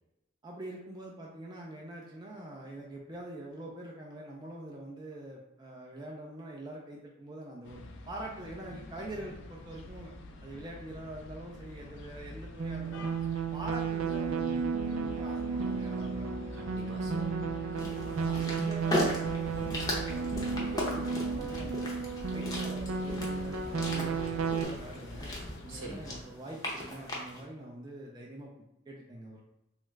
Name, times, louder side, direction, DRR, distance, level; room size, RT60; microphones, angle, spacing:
voice 1, 0.4-10.1 10.4-13.1 13.5-16.4 18.1-22.0 22.3-25.3 25.6-28.5 28.9-29.4, right 1 dB, 20° right, -2 dB, 0.4 m, -44 dB
sound 1, 7.6-26.2, left 2 dB, 60° left, 0.4 m, -47 dB
sound 2, 12.6-24.6, right 5 dB, 85° right, 0.4 m, -33 dB
voice 2, 16.5-17.3 17.7-18.3 25.7-26.3, right 1 dB, 65° right, -1 dB, 0.7 m, -46 dB
sound 3, 17.8-27.4, left 1 dB, 20° left, 0.6 m, -37 dB
3.1 x 2.4 x 3.1 m, 0.88 s
head